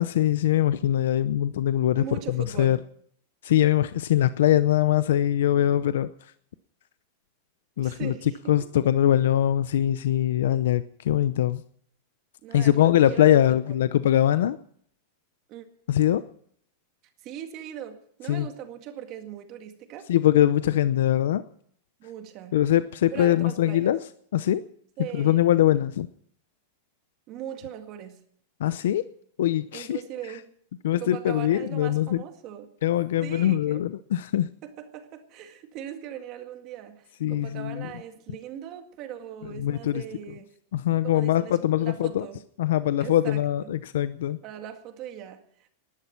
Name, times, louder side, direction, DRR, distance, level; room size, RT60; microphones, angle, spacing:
voice 1, 0.0-2.8 3.4-6.3 7.8-8.1 8.5-11.6 12.5-14.6 15.9-16.2 18.3-18.5 20.1-21.4 22.5-24.0 24.3-24.6 25.1-26.1 28.6-29.0 29.4-30.0 30.8-32.2 32.8-34.5 37.2-37.9 39.6-40.0 40.7-42.3 42.6-44.4, left 12 dB, 75° left, 0.7 m, -22 dB
voice 2, 2.0-2.9 7.8-8.8 12.4-13.8 15.5-15.7 17.2-20.1 22.0-22.6 23.1-23.9 25.0-25.5 27.3-28.2 29.7-30.5 31.0-32.8 33.2-33.8 34.6-40.6 41.0-42.4 43.0-43.7 44.4-45.7, right 10 dB, 30° right, 1.9 m, -40 dB
19.5 x 11.5 x 5.9 m
supercardioid pair, 170°, 0 cm